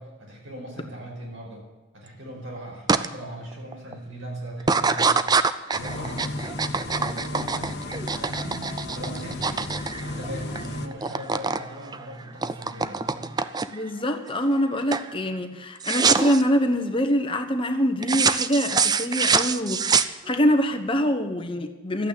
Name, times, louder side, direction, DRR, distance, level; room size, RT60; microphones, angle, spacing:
voice 1, 0.0-1.6 1.9-5.2 5.5-9.7 10.0-13.4, right 1 dB, 65° right, -1 dB, 5.2 m, -39 dB
sound 1, 2.9-3.1 3.5-3.9 4.6-10.7 10.9-11.6 11.9-13.9 14.4-14.7 14.9-15.1 15.8-16.4 18.0-20.5, right 5 dB, 20° right, 0.4 m, -24 dB
sound 2, 5.7-10.9, left 2 dB, 50° left, 1.2 m, -34 dB
voice 2, 13.7-22.1, equal, 25° left, 6 dB, 1.2 m, -24 dB
13.0 x 9.1 x 8.6 m, 1.2 s
head